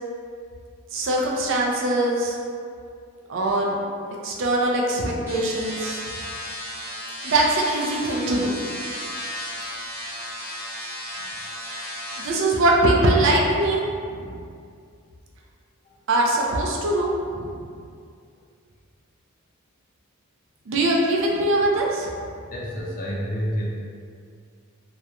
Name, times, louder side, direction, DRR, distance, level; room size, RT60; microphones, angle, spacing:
voice 1, 0.9-2.4 3.3-3.8 4.2-6.0 7.2-8.5 12.2-14.4 16.1-17.6 20.7-22.1, right 1 dB, 60° right, -2 dB, 0.4 m, -22 dB
sound 1, 5.3-12.3, equal, 10° right, 0.5 m, -34 dB
voice 2, 22.5-23.7, equal, 40° left, -3 dB, 0.4 m, -29 dB
2.3 x 2.1 x 2.8 m, 2.3 s
head